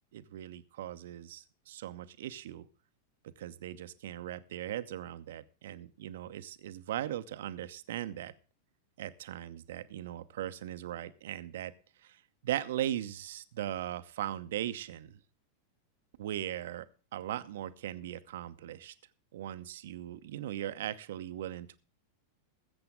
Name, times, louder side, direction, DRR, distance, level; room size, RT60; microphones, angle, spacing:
voice 1, 0.1-2.6 3.4-8.3 9.0-11.7 12.0-15.2 16.2-16.9 17.1-18.9 19.3-21.8, right 12 dB, 55° right, 12 dB, 0.8 m, -39 dB
20.5 x 8.0 x 3.7 m, 0.36 s
figure-of-eight pair, 90°, 0 cm